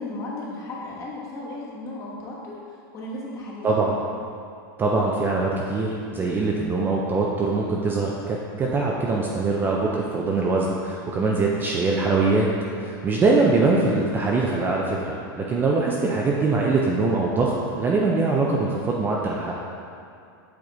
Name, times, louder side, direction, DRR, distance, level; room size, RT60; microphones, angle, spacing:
voice 1, 0.0-3.7, left 2 dB, 25° left, -4 dB, 1.2 m, -35 dB
voice 2, 3.6-4.0 4.8-12.5 12.7-19.5, right 3 dB, 15° right, -2 dB, 0.4 m, -23 dB
7.8 x 3.5 x 3.8 m, 2.5 s
supercardioid pair, 150°, 12 cm